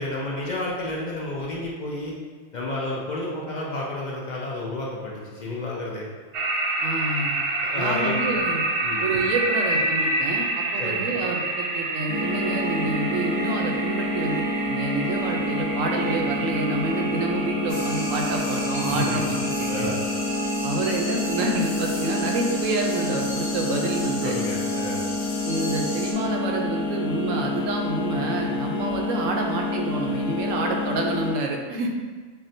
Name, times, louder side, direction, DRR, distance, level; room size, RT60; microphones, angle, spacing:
voice 1, 0.0-2.1 2.5-6.0 7.7-8.2 8.8-9.0 10.8-11.0 18.8-19.2 19.7-20.0 24.2-25.1, left 2 dB, 60° left, -4 dB, 0.4 m, -31 dB
sound 1, 6.3-23.1, right 2 dB, 65° right, 0.7 m, -29 dB
voice 2, 6.8-7.4 7.7-8.6 9.0-19.9 20.6-24.4 25.4-31.9, right 3 dB, 80° right, 1 dB, 1.0 m, -28 dB
sound 2, 12.1-31.3, left 2 dB, 40° left, 0.8 m, -28 dB
sound 3, 17.7-26.1, left 2 dB, 85° left, 1.1 m, -36 dB
5.7 x 2.1 x 2.6 m, 1.4 s
omnidirectional pair, 1.3 m